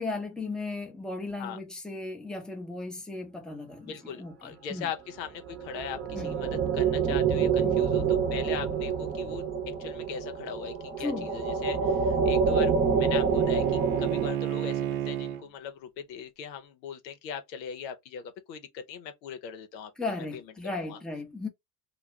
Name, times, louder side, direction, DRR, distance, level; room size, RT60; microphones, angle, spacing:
voice 1, 0.0-4.9 6.1-6.4 7.6-7.8 11.0-11.3 20.0-21.5, left 3 dB, ahead, 0.8 m, -36 dB
voice 2, 3.8-19.9 20.3-21.0, left 7 dB, 85° left, 0.8 m, -40 dB
sound 1, 5.4-14.3, right 6 dB, 25° right, 0.9 m, -27 dB
Bowed string instrument, 11.4-15.4, right 12 dB, 60° right, 0.6 m, -34 dB
2.3 x 2.2 x 3.0 m
hypercardioid pair, 85°, 50 cm